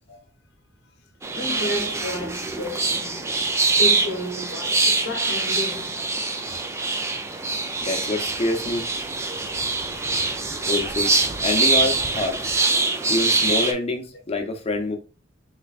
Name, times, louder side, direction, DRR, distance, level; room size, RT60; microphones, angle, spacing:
sound 1, 1.2-13.7, right 3 dB, 15° right, 0.3 m, -24 dB
voice 1, 1.3-3.3 3.7-6.0 9.2-9.4 10.0-10.3 12.3-13.5, equal, 55° left, 1.0 m, -33 dB
voice 2, 7.8-8.8 10.7-11.1 11.4-12.5 13.1-15.0, left 2 dB, 30° left, 0.7 m, -26 dB
3.8 x 3.2 x 2.4 m
head